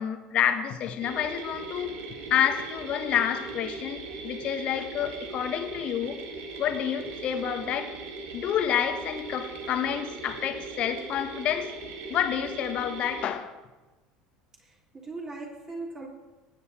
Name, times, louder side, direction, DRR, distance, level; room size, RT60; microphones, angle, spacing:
voice 1, 0.0-1.9 2.3-6.2 6.6-7.9 8.3-11.7 12.1-13.5, left 9 dB, 45° left, 8 dB, 1.4 m, -28 dB
sound 1, 1.0-13.2, right 3 dB, 55° right, 1.8 m, -39 dB
voice 2, 14.6-16.1, right 3 dB, 25° right, -1 dB, 3.3 m, -39 dB
19.5 x 9.1 x 4.4 m, 1.2 s
figure-of-eight pair, 65°, 3 cm